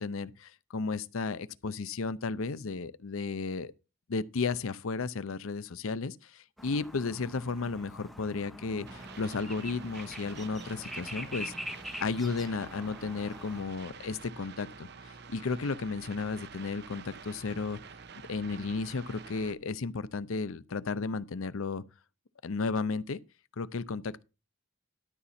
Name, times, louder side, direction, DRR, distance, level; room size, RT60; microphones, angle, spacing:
voice 1, 0.0-3.7 4.1-11.5 12.0-17.8 18.3-21.8 22.4-23.2 23.6-24.2, left 4 dB, 75° left, 0.6 m, -34 dB
sound 1, 6.6-13.6, equal, ahead, 0.8 m, -44 dB
sound 2, 8.9-19.5, right 5 dB, 50° right, 0.7 m, -48 dB
12.5 x 4.2 x 6.9 m
head